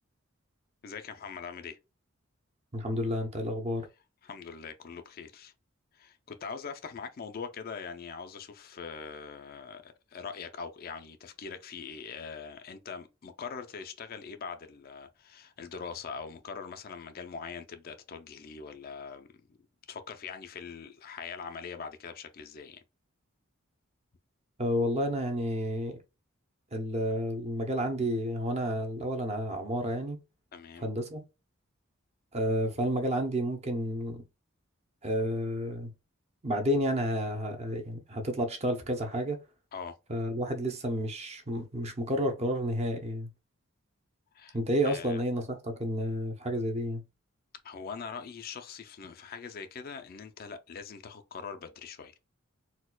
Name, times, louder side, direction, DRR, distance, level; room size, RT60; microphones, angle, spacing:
voice 1, 0.8-1.8 4.2-5.5 5.9-19.6 19.9-22.8 30.5-30.9 39.7-39.9 44.3-44.6 44.8-45.2 47.6-52.2, left 5 dB, 45° left, 0.4 m, -42 dB
voice 2, 2.7-3.9 24.6-26.0 26.7-30.2 30.8-31.2 32.3-34.2 35.0-35.9 36.4-39.4 40.1-43.3 44.5-47.0, equal, 30° right, 0.6 m, -30 dB
4.1 x 2.3 x 2.2 m
head